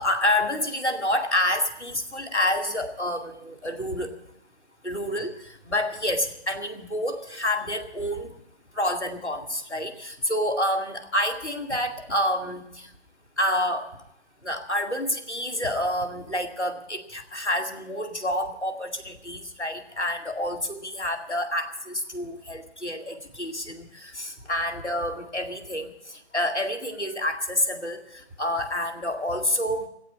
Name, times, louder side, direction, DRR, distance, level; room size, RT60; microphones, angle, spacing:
voice 1, 0.0-4.1 4.8-8.3 8.7-12.9 13.4-13.9 14.4-25.9 26.3-28.0 28.4-29.9, left 1 dB, ahead, -11 dB, 0.8 m, -28 dB
16.5 x 8.6 x 9.7 m, 0.81 s
figure-of-eight pair, 145°, 34 cm